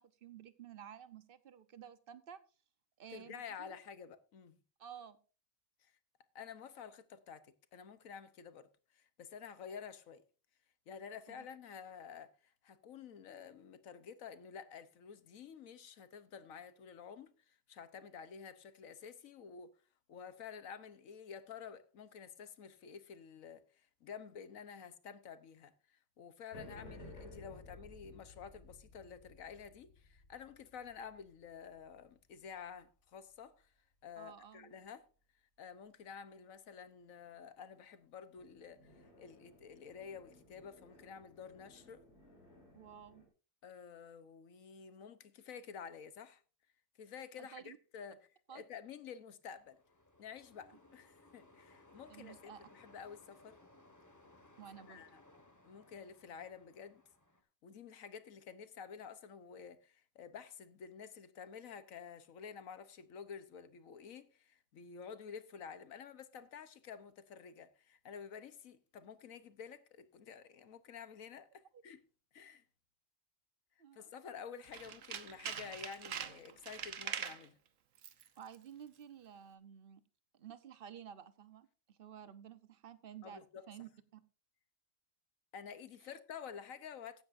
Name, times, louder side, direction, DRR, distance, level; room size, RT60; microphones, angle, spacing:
voice 1, 0.0-2.4 3.0-3.7 4.8-5.2 11.3-11.5 34.2-34.7 42.7-43.3 47.4-47.8 48.5-48.6 52.1-52.6 54.6-55.0 73.8-74.1 78.4-80.0 80.3-84.2, right 9 dB, 45° right, 1.0 m, -53 dB
voice 2, 3.1-4.6 5.8-5.9 6.3-10.2 10.9-19.7 20.1-33.7 34.0-35.1 35.6-42.0 43.6-46.4 47.0-49.8 50.2-53.6 54.9-55.2 55.6-57.0 57.6-72.0 72.3-72.6 73.9-77.6 83.2-83.7 85.5-87.2, left 7 dB, 80° left, 1.4 m, -51 dB
sound 1, 26.5-33.0 38.4-43.3, left 2 dB, 50° left, 3.6 m, -57 dB
sound 2, 49.5-57.4, left 2 dB, 15° left, 1.6 m, -63 dB
Tools, 74.6-77.5 78.0-78.3 78.5-78.6, right 8 dB, 70° right, 1.3 m, -43 dB
16.0 x 12.0 x 2.6 m
omnidirectional pair, 1.4 m